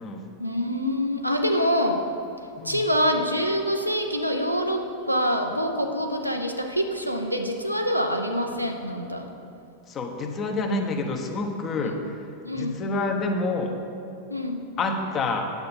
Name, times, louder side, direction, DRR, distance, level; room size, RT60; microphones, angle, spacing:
voice 1, 0.4-2.0 2.6-9.2 11.8-11.9 12.4-12.8 14.3-14.6, equal, 90° right, 3 dB, 0.7 m, -25 dB
voice 2, 9.9-12.1 12.5-13.7 14.8-15.5, left 3 dB, 30° left, 4 dB, 1.0 m, -28 dB
9.5 x 7.6 x 4.2 m, 2.7 s
figure-of-eight pair, 90°, 0 cm